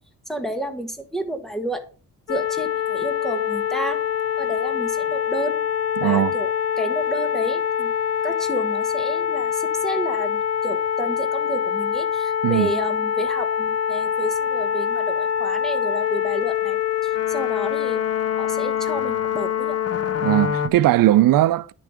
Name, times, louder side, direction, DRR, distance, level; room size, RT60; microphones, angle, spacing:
voice 1, 0.3-1.8 2.3-4.0 4.4-5.6 6.0-6.5 6.8-7.9 8.2-18.0 18.4-19.8, right 1 dB, ahead, 1.7 m, -31 dB
sound 1, 2.3-20.7, left 8 dB, 50° left, 0.7 m, -24 dB
voice 2, 6.0-6.3 12.4-12.7 20.2-21.7, right 14 dB, 85° right, 0.5 m, -18 dB
10.0 x 6.8 x 5.0 m
cardioid pair, 105°, 33 cm